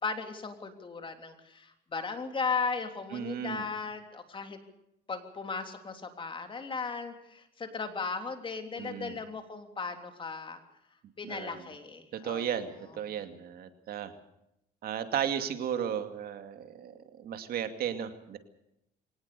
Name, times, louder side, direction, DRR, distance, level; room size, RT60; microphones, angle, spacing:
voice 1, 0.0-4.6 5.1-10.6 11.2-12.7, left 4 dB, 30° left, 6 dB, 3.3 m, -36 dB
voice 2, 3.1-3.6 8.8-9.2 11.2-11.6 12.1-14.1 14.8-18.4, right 9 dB, 65° right, 8 dB, 2.4 m, -35 dB
23.5 x 18.5 x 6.9 m, 0.81 s
cardioid pair, 110°, 17 cm